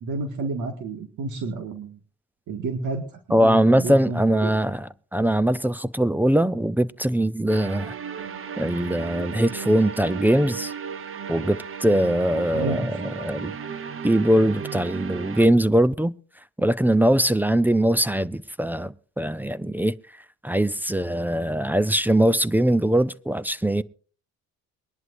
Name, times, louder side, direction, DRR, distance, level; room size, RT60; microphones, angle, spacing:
voice 1, 0.0-2.0 2.5-3.0 3.3-4.5 12.5-12.8, right 3 dB, 80° right, 1.9 m, -30 dB
voice 2, 3.3-7.9 8.6-10.7 11.3-13.5 14.0-16.1 16.6-19.9 20.4-23.8, right 1 dB, 5° right, 0.5 m, -21 dB
sound 1, 7.5-15.5, right 7 dB, 45° right, 0.9 m, -35 dB
23.0 x 11.0 x 2.6 m
cardioid pair, 90°, 30 cm